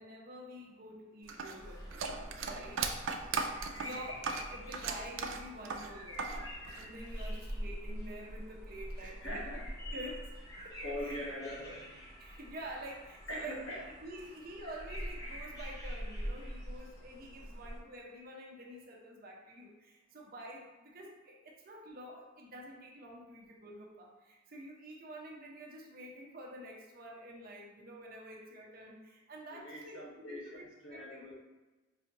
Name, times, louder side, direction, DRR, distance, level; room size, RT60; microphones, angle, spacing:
voice 1, 0.0-2.0 2.4-2.8 3.8-9.4 9.9-11.2 12.2-30.0 30.3-30.6 30.9-31.3, right 1 dB, 50° right, -1 dB, 0.7 m, -48 dB
sound 1, 1.3-6.4 6.6-7.5, right 5 dB, 75° right, 0.4 m, -37 dB
sound 2, 1.6-17.8, equal, 15° left, 1.0 m, -44 dB
voice 2, 9.0-9.7 10.8-11.9 13.3-13.8 29.5-31.3, left 1 dB, 80° left, -3 dB, 1.0 m, -42 dB
4.9 x 2.6 x 2.9 m, 1.1 s
head